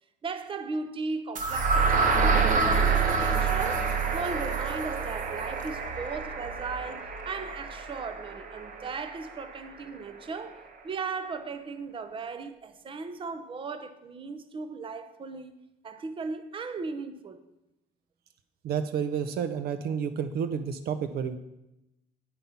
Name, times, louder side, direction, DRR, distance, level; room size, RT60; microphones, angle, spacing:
voice 1, 0.2-15.5 15.8-17.4, right 4 dB, 30° right, 0.7 m, -37 dB
sound 1, 1.4-9.3, right 4 dB, 50° right, 1.2 m, -27 dB
voice 2, 18.6-21.4, right 7 dB, 65° right, 0.6 m, -30 dB
8.8 x 5.3 x 5.7 m
cardioid pair, 110°, 17 cm